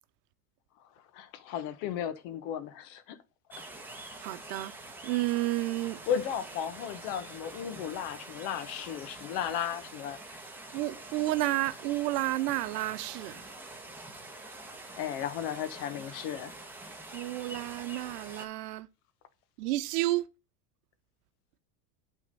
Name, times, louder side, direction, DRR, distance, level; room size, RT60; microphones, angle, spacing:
voice 1, 1.1-3.2 6.1-10.4 15.0-16.5, left 9 dB, 65° left, 1.2 m, -35 dB
sound 1, 3.5-18.5, right 2 dB, 5° right, 1.1 m, -46 dB
voice 2, 4.2-4.7 5.0-6.0 10.7-13.5 17.1-18.9 19.6-20.3, right 17 dB, 80° right, 0.8 m, -31 dB
8.5 x 3.7 x 5.3 m
supercardioid pair, 125°, 47 cm